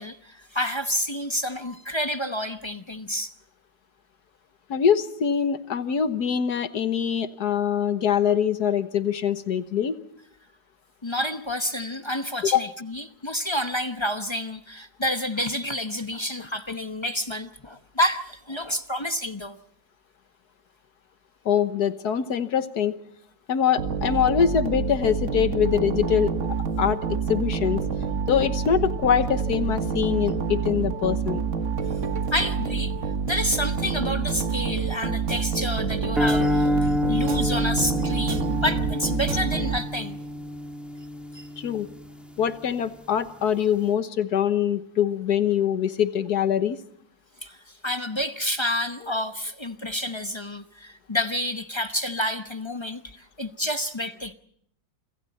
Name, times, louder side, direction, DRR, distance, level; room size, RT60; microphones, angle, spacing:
voice 1, 0.0-3.3 11.0-19.6 32.3-32.9 33.3-40.2 41.3-41.5 47.4-54.3, left 1 dB, 25° left, 0.6 m, -29 dB
voice 2, 4.7-10.0 12.4-12.6 21.4-23.0 23.5-26.3 26.8-27.8 28.3-31.4 41.6-41.9 42.4-46.8, left 8 dB, 60° left, 1.6 m, -23 dB
sound 1, 23.8-40.2, right 5 dB, 45° right, 1.5 m, -27 dB
sound 2, 36.2-42.5, left 1 dB, ahead, 1.5 m, -28 dB
28.0 x 26.0 x 4.2 m
omnidirectional pair, 2.0 m